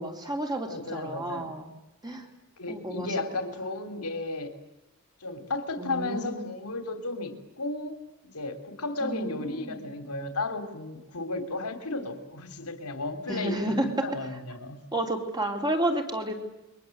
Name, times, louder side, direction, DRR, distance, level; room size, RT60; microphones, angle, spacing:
voice 1, 0.0-1.7 2.0-2.3 2.7-3.1 5.8-6.4 9.0-9.8 13.3-14.1 14.9-16.3, right 1 dB, 20° right, 3 dB, 3.7 m, -31 dB
voice 2, 0.7-1.5 2.6-4.5 5.2-8.0 8.3-14.8, left 2 dB, 90° left, 7 dB, 3.3 m, -34 dB
29.0 x 23.0 x 7.9 m, 0.91 s
head